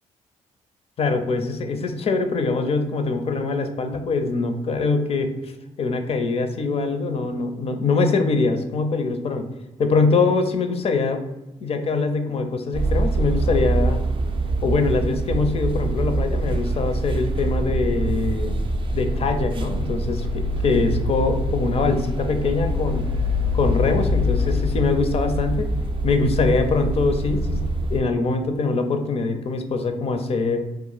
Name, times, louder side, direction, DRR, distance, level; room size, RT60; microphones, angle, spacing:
voice 1, 1.0-5.5 5.8-9.5 9.8-11.3 11.6-14.0 14.6-18.5 18.9-23.0 23.5-25.7 26.0-30.7, left 3 dB, 45° left, 7 dB, 0.4 m, -23 dB
sound 1, 12.7-28.0, right 1 dB, 40° right, 0.4 m, -24 dB
2.3 x 2.0 x 3.7 m, 0.99 s
supercardioid pair, 70°, 14 cm